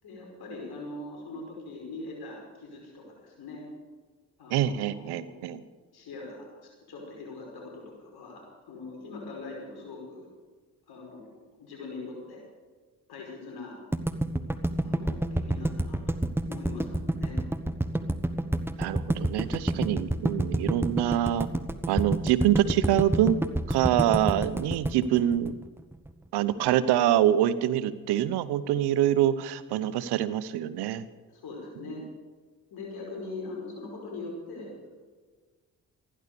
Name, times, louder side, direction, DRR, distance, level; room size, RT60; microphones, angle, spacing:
voice 1, 0.0-3.6 4.4-5.6 5.9-8.4 8.7-10.3 10.9-12.4 13.1-13.7 14.8-16.0 16.5-16.9 17.2-17.4 31.3-32.0 32.7-34.9, left 3 dB, 75° left, -1 dB, 5.2 m, -42 dB
voice 2, 4.5-5.6 18.8-21.5 21.9-23.4 23.7-25.6 26.3-31.0, right 11 dB, 85° right, 14 dB, 0.8 m, -25 dB
sound 1, 13.9-26.1, right 1 dB, 5° right, 1.2 m, -28 dB
15.5 x 11.0 x 6.8 m, 1.4 s
supercardioid pair, 50°, 38 cm